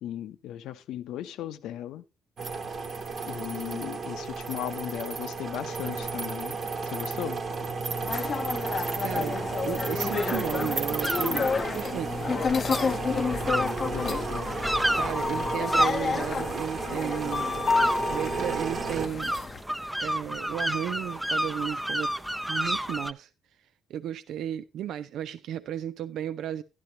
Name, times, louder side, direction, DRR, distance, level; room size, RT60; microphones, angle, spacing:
voice 1, 0.0-2.0 3.2-6.6 6.8-7.4 13.5-14.5, left 11 dB, 85° left, 0.7 m, -37 dB
sound 1, 2.4-19.1, right 4 dB, 50° right, 1.2 m, -33 dB
sound 2, 8.0-19.6, left 5 dB, 45° left, 0.6 m, -30 dB
voice 2, 9.0-12.4 14.9-17.5 18.1-19.4 20.0-22.1 22.5-23.3 23.9-26.6, right 10 dB, 75° right, 0.4 m, -34 dB
sound 3, 10.0-23.1, right 1 dB, 5° right, 0.6 m, -32 dB
11.0 x 11.0 x 2.7 m
cardioid pair, 90°, 0 cm